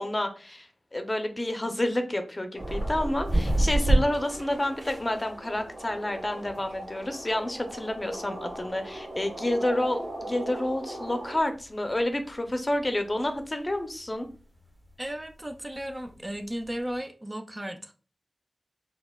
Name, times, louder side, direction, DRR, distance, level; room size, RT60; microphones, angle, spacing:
voice 1, 0.0-14.3, left 1 dB, 30° left, 0.5 m, -29 dB
sound 1, 2.5-11.4, right 1 dB, 85° right, 0.9 m, -40 dB
sound 2, 2.6-17.0, right 1 dB, 65° right, 1.5 m, -32 dB
voice 2, 15.0-17.9, equal, 25° right, 0.4 m, -35 dB
4.0 x 2.1 x 2.2 m
cardioid pair, 40°, 0 cm